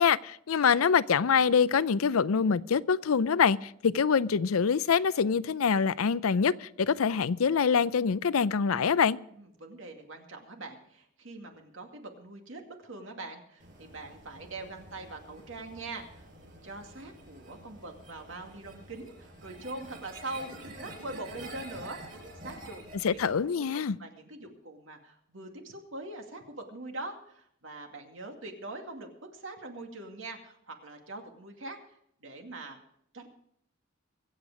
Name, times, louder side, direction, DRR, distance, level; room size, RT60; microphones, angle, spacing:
voice 1, 0.0-9.2 23.0-24.0, left 6 dB, 90° left, 0.5 m, -25 dB
voice 2, 9.3-22.0 22.4-23.2 23.6-32.8 33.1-33.3, right 2 dB, 70° right, 2.3 m, -43 dB
sound 1, 13.6-23.4, right 1 dB, 40° right, 6.3 m, -48 dB
23.5 x 8.1 x 5.0 m
head